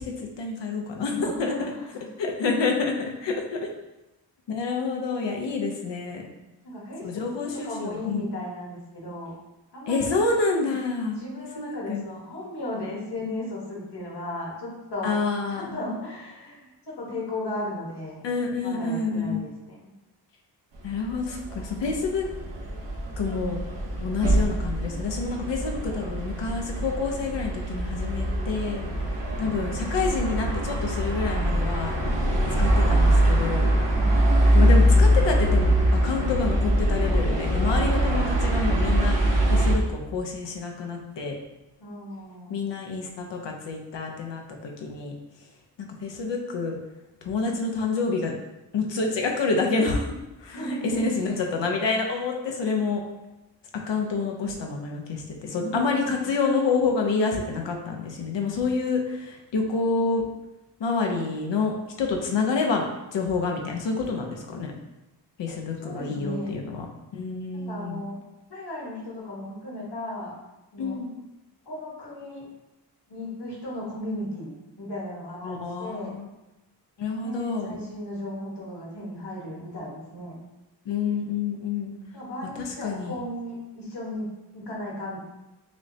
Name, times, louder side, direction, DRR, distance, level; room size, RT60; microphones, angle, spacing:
voice 1, 0.0-1.5 2.2-3.7 4.5-6.3 7.0-8.3 9.9-12.0 15.0-15.8 18.2-19.4 20.8-22.3 23.2-23.6 24.0-28.8 29.4-32.2 32.6-33.7 34.5-41.4 42.5-45.1 45.8-46.7 47.2-48.3 48.7-50.1 50.4-53.0 53.9-60.2 60.8-62.8 63.1-64.7 65.4-66.9 67.1-68.0 70.8-71.1 75.4-76.3 77.0-77.8 80.9-81.9 82.6-83.2, left 4 dB, 85° left, 1 dB, 0.6 m, -28 dB
voice 2, 1.2-2.0 6.6-9.3 9.7-10.2 11.0-15.1 15.5-18.2 18.6-19.8 29.3-29.8 33.9-34.5 41.8-42.5 50.5-51.0 55.5-56.2 65.8-66.6 67.5-68.2 68.5-70.3 70.7-71.0 71.6-72.5 73.1-76.2 77.2-80.4 82.1-85.2, left 1 dB, 65° left, -4 dB, 1.4 m, -36 dB
sound 1, 20.9-39.7, equal, 80° right, 0.9 m, -23 dB
6.1 x 2.0 x 2.7 m, 0.98 s
wide cardioid pair, 85°, 42 cm